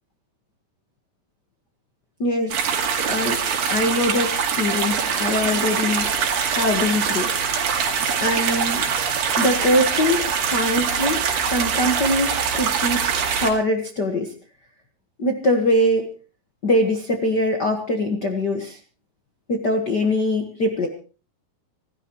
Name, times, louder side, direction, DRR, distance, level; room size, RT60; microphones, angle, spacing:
voice 1, 2.2-2.6 3.1-3.4 3.7-6.1 6.5-7.3 8.2-8.8 9.4-14.3 15.2-16.1 16.6-18.8 19.5-20.9, left 1 dB, 65° left, 5 dB, 1.0 m, -22 dB
sound 1, 2.5-13.5, right 7 dB, 65° right, 4.0 m, -23 dB
26.5 x 14.0 x 3.1 m, 0.36 s
omnidirectional pair, 4.5 m